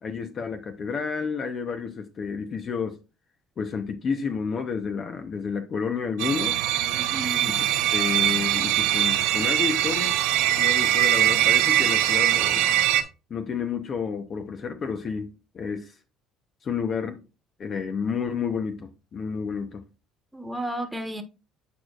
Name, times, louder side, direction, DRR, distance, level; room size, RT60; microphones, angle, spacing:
voice 1, 0.0-3.0 3.6-6.6 7.6-10.2 10.6-12.7 13.3-16.0 16.6-17.2 17.6-19.8, left 6 dB, 45° left, 0.9 m, -30 dB
sound 1, 6.2-13.0, right 13 dB, 80° right, 0.8 m, -22 dB
voice 2, 6.9-7.5 20.3-21.2, right 1 dB, 10° right, 1.4 m, -33 dB
8.4 x 4.8 x 2.5 m
supercardioid pair, 75°, 0 cm